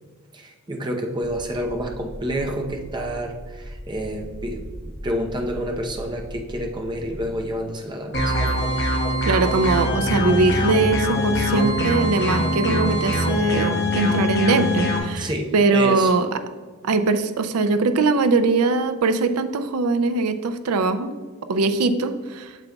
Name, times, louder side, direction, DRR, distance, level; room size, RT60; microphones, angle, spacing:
voice 1, 0.3-4.6 5.0-8.3 15.2-16.1, equal, 20° right, 1 dB, 0.7 m, -29 dB
sound 1, 1.2-7.3, equal, 55° right, 2.2 m, -39 dB
sound 2, 8.1-15.0, left 1 dB, 50° left, 1.3 m, -23 dB
voice 2, 9.2-16.4 16.8-21.1 21.5-22.6, right 3 dB, 85° right, 10 dB, 0.4 m, -21 dB
8.9 x 6.8 x 2.3 m, 1.5 s
head